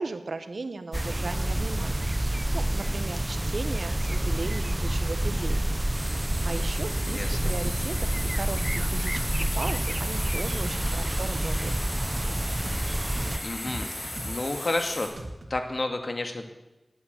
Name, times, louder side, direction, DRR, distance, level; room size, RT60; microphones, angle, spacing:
voice 1, 0.0-5.6 6.2-11.7, right 3 dB, 90° right, 10 dB, 1.1 m, -37 dB
sound 1, 0.9-13.4, right 1 dB, 25° right, 0.8 m, -28 dB
sound 2, 5.9-15.1, left 1 dB, 40° left, 5.8 m, -37 dB
sound 3, 7.7-7.9 8.2-8.4 8.7-8.9 9.2-10.9 11.2-11.3 11.7-11.9 12.2-12.4 12.7-12.9 13.2-14.7 15.2-15.6, right 1 dB, 70° right, 2.7 m, -37 dB
voice 2, 13.4-15.1 15.5-16.5, left 2 dB, 65° left, 5 dB, 2.2 m, -31 dB
20.0 x 8.9 x 8.2 m, 1.0 s
wide cardioid pair, 60°, 0 cm